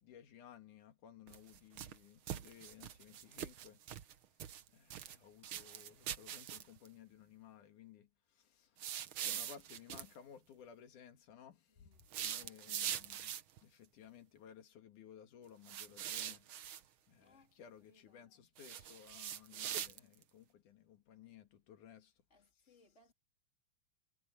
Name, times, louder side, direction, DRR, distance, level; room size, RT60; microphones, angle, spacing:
voice 1, 0.0-3.8 4.7-11.9 12.2-16.5 17.1-22.1 22.6-22.7, left 9 dB, 90° left, 3.4 m, -58 dB
sound 1, 1.3-2.0 2.3-4.1 4.4-5.2 5.4-6.9 8.8-10.1 12.0-13.6 15.7-16.8 18.6-20.2, right 10 dB, 65° right, 1.3 m, -43 dB
voice 2, 11.7-13.0 17.2-18.3 22.3-23.1, left 3 dB, 20° left, 3.9 m, -70 dB
omnidirectional pair, 3.5 m